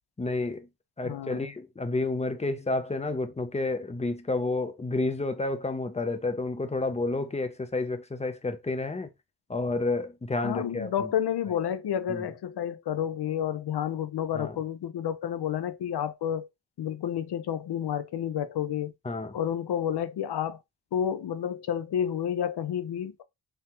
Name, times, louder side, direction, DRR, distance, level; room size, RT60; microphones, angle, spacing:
voice 1, 0.2-0.7 1.0-9.1 9.5-11.1 12.1-12.3 14.3-14.6 19.0-19.3, left 2 dB, 15° left, 0.4 m, -30 dB
voice 2, 1.0-1.5 10.4-16.5 16.8-18.9 19.3-20.6 20.9-23.2, left 9 dB, 65° left, 0.6 m, -30 dB
3.4 x 3.1 x 2.9 m
wide cardioid pair, 135°, 43 cm